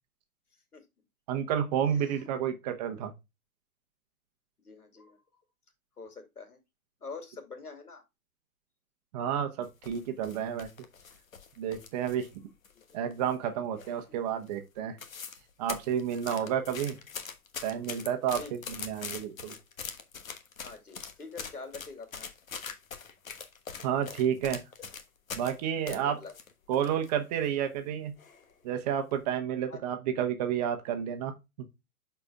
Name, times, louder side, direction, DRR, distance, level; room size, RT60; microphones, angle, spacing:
voice 1, 0.5-0.8 1.9-2.2 4.6-5.2 6.0-6.6 7.0-8.0 12.9-13.0 14.1-14.2 16.4-16.5 18.3-18.5 20.6-22.3 25.9-26.3 29.7-29.8, left 4 dB, 75° left, 2.8 m, -45 dB
voice 2, 1.3-3.1 9.1-10.7 11.6-12.3 12.9-15.0 15.6-16.9 17.6-19.5 23.8-24.6 25.3-26.1 26.7-28.2 28.6-31.3, right 9 dB, 25° right, 1.0 m, -30 dB
sound 1, 9.6-12.4 12.6-13.4 13.8-14.1 14.5-14.6 14.8-15.4 15.7-25.6 25.9-27.1 27.4-27.5 28.2-28.5 28.9-29.1, left 6 dB, 60° left, 1.3 m, -42 dB
12.5 x 4.5 x 2.3 m
figure-of-eight pair, 120°, 45 cm